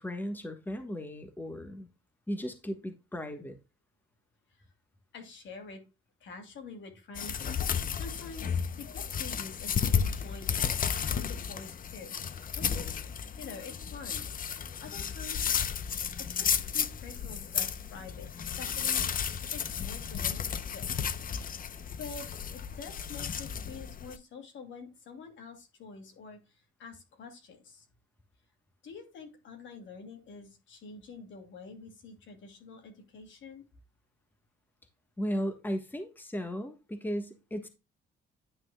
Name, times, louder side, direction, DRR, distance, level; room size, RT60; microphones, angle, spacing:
voice 1, 0.0-1.9 2.3-3.6 35.2-37.7, equal, 10° left, 1.3 m, -36 dB
voice 2, 5.1-5.8 6.2-10.6 11.0-13.0 13.4-14.3 14.6-15.6 16.2-18.3 18.6-19.0 19.5-21.1 22.0-27.9 28.8-33.6, left 4 dB, 70° left, 2.6 m, -47 dB
sound 1, 7.2-24.2, left 7 dB, 45° left, 0.7 m, -33 dB
10.0 x 5.9 x 2.2 m
cardioid pair, 90°, 20 cm